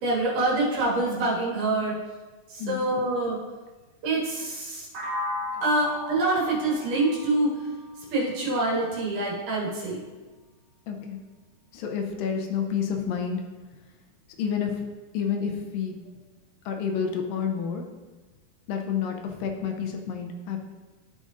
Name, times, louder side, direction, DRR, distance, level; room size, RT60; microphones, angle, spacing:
voice 1, 0.0-1.9 2.5-3.4 4.0-4.9 5.6-7.5 8.1-10.0, right 2 dB, 60° right, -5 dB, 2.9 m, -25 dB
sound 1, 4.9-8.8, left 1 dB, 80° right, 1.4 m, -36 dB
voice 2, 10.9-11.2 11.7-13.4 14.4-14.9 15.1-16.0 16.7-17.8 18.7-20.6, left 7 dB, 80° left, 3 dB, 2.1 m, -29 dB
13.0 x 5.0 x 2.6 m, 1.3 s
omnidirectional pair, 4.5 m